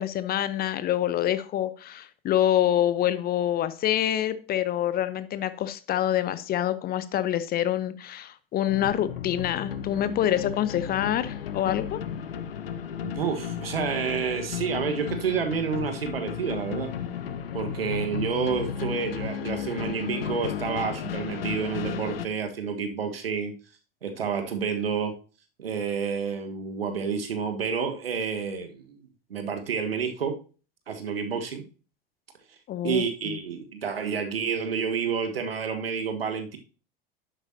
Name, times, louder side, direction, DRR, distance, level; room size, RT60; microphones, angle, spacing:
voice 1, 0.0-12.0 32.7-33.4, left 11 dB, 30° left, 14 dB, 0.8 m, -26 dB
sound 1, 8.7-22.3, left 8 dB, 75° left, 0.7 m, -34 dB
voice 2, 13.0-16.9 17.5-23.5 24.0-25.2 25.6-29.0 29.3-30.3 30.9-31.7 32.8-36.6, right 6 dB, 80° right, 6 dB, 1.5 m, -29 dB
11.0 x 8.0 x 2.8 m, 0.36 s
figure-of-eight pair, 85°, 29 cm